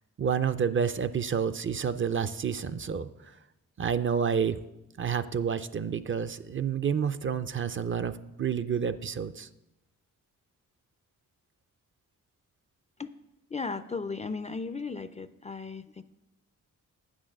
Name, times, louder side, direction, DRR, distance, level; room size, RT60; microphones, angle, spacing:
voice 1, 0.2-3.1 3.8-4.6 5.0-8.1 8.4-9.5, right 7 dB, 40° right, 13 dB, 0.5 m, -29 dB
voice 2, 13.5-16.0, left 4 dB, 20° left, 12 dB, 0.4 m, -36 dB
8.4 x 6.2 x 6.3 m, 0.92 s
cardioid pair, 80°, 33 cm